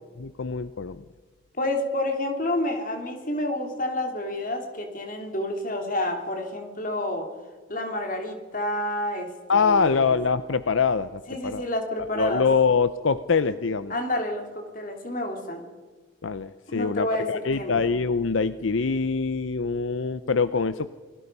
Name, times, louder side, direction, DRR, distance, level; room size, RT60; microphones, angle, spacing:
voice 1, 0.2-1.0 9.5-11.6 12.1-13.9 16.2-20.9, left 5 dB, 75° left, 13 dB, 0.6 m, -24 dB
voice 2, 1.6-7.3 7.7-10.2 11.3-12.4 13.9-15.6 16.7-17.8, left 1 dB, 40° left, 4 dB, 3.1 m, -29 dB
28.0 x 21.0 x 5.5 m, 1.5 s
head